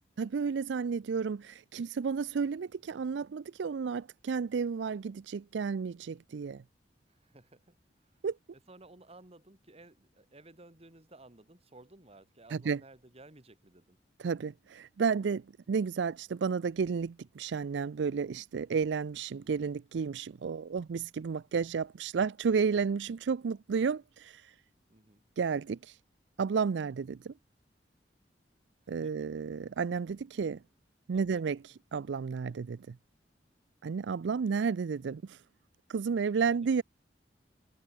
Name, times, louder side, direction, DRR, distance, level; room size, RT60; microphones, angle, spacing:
voice 1, 0.0-6.6 8.2-8.4 12.5-12.8 14.2-24.5 25.4-26.0 26.4-27.3 28.9-30.6 31.1-33.0 33.8-35.4 35.9-36.8, right 5 dB, 75° right, 0.4 m, -32 dB
voice 2, 1.0-1.5 7.1-7.8 8.7-14.0 24.9-25.2 29.0-29.3 31.1-31.4 36.5-36.7, right 2 dB, 35° right, 2.4 m, -56 dB
head